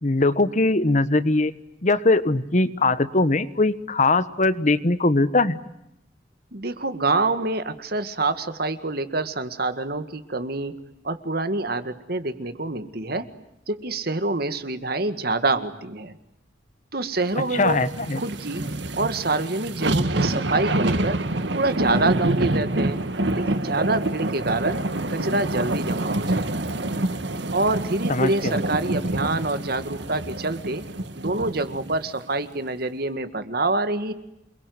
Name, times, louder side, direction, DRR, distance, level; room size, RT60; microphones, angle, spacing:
voice 1, 0.0-1.5 1.8-5.6 17.5-18.2 28.1-28.6, left 2 dB, 40° left, 14 dB, 1.2 m, -21 dB
voice 2, 6.5-10.7 11.0-13.3 13.7-16.2 16.9-17.8 18.1-18.6 18.9-21.2 21.5-23.0 23.3-24.8 25.1-26.7 27.5-30.8 31.2-34.1, right 2 dB, 55° right, 11 dB, 2.0 m, -26 dB
sound 1, 17.5-32.0 32.4-32.5, right 1 dB, 75° right, 1.7 m, -27 dB
28.5 x 22.0 x 9.5 m, 0.83 s
head